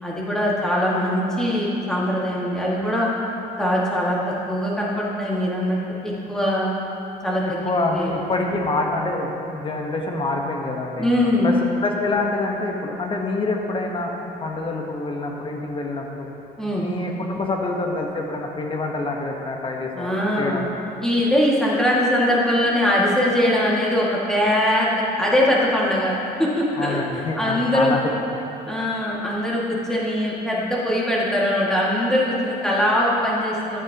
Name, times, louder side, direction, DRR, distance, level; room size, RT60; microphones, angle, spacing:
voice 1, 0.0-3.1 3.6-4.2 4.5-6.7 7.2-7.6 7.9-8.1 11.0-11.6 16.6-16.9 19.9-20.6 21.0-26.1 26.4-27.0 27.4-27.9 28.7-33.8, left 1 dB, 5° left, -6 dB, 2.0 m, -21 dB
voice 2, 7.4-11.1 11.4-14.1 14.4-16.3 16.8-20.8 26.8-28.1, left 2 dB, 30° left, 1 dB, 1.1 m, -26 dB
11.0 x 8.8 x 2.9 m, 3.0 s
cardioid pair, 110°, 17 cm